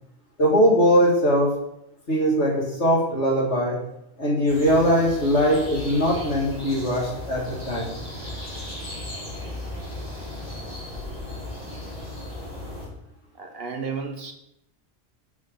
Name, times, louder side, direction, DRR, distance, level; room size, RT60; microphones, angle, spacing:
voice 1, 0.4-1.5 2.1-3.8 4.2-7.9, equal, 75° left, -3 dB, 2.7 m, -21 dB
sound 1, 4.5-12.9, left 1 dB, 35° left, 3.8 m, -36 dB
voice 2, 13.4-14.3, right 5 dB, 60° right, 4 dB, 1.4 m, -32 dB
7.5 x 6.2 x 5.3 m, 0.79 s
omnidirectional pair, 1.2 m